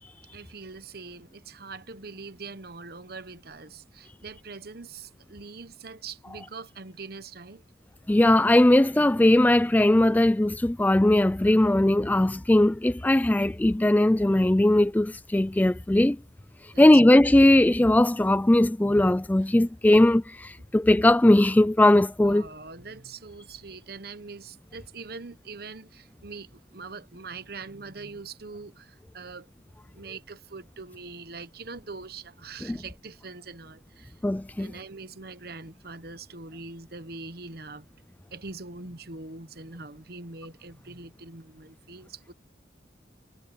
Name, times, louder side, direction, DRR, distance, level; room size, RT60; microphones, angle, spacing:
voice 1, 0.3-7.6 16.7-16.9 22.2-29.5 29.9-34.1 34.6-37.9 38.3-42.3, right 4 dB, 55° right, 1.1 m, -42 dB
voice 2, 8.1-16.2 16.6-22.5 32.6-32.8 34.2-34.7, left 1 dB, 10° left, 0.3 m, -19 dB
head